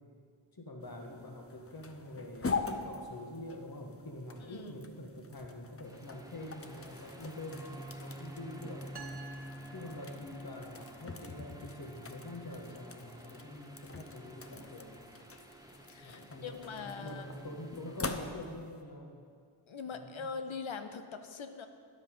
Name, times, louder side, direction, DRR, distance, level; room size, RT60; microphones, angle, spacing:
voice 1, 0.5-8.9 9.7-14.9 16.0-19.2 19.9-20.3, left 1 dB, 45° left, 2 dB, 1.5 m, -46 dB
sound 1, 0.8-18.8, left 4 dB, 30° left, 0.7 m, -44 dB
sound 2, 5.8-18.3, equal, 5° right, 0.9 m, -50 dB
sound 3, 9.0-10.7, right 4 dB, 55° right, 1.1 m, -51 dB
voice 2, 15.9-17.3 19.7-21.7, left 5 dB, 75° left, 8 dB, 0.7 m, -42 dB
10.5 x 8.0 x 5.4 m, 2.1 s
wide cardioid pair, 50°, 48 cm